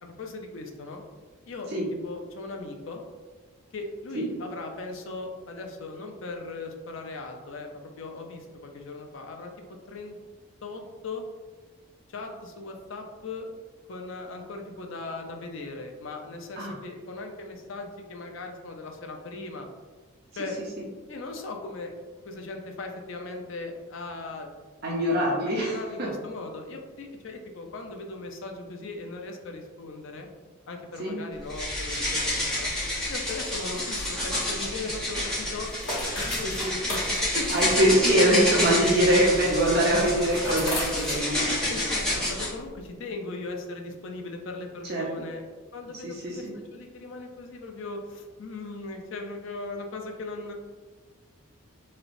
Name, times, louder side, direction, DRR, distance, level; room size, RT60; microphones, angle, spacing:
voice 1, 0.0-1.0 1.5-1.7 2.0-3.0 3.7-9.5 9.9-10.2 10.6-11.3 12.1-13.5 13.9-19.7 20.4-20.6 21.1-21.9 22.2-24.5 25.1-30.3 30.7-32.7 33.1-35.7 36.1-36.5 36.9-38.0 38.6-39.1 41.7-45.5 45.7-50.5, left 3 dB, 60° left, 3 dB, 0.4 m, -38 dB
voice 2, 24.8-26.1 31.0-31.2 36.4-36.7 37.5-41.7 44.8-45.3 46.0-46.5, right 1 dB, 45° right, -4 dB, 0.6 m, -24 dB
sound 1, 31.5-42.5, left 1 dB, 5° left, 0.8 m, -29 dB
sound 2, 34.3-42.0, left 1 dB, 80° left, 1.2 m, -38 dB
3.2 x 2.8 x 2.5 m, 1.3 s
head